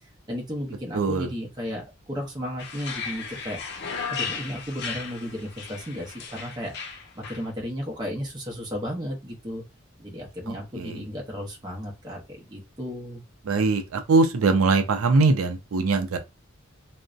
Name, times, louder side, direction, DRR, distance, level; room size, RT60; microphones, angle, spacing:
voice 1, 0.3-3.6 4.1-9.6 10.0-13.2, equal, 20° right, 0.6 m, -34 dB
voice 2, 0.9-1.3 10.5-11.0 13.5-16.2, right 3 dB, 85° right, 0.4 m, -22 dB
sound 1, 2.6-7.4, left 5 dB, 50° left, 0.5 m, -35 dB
2.5 x 2.1 x 2.3 m
head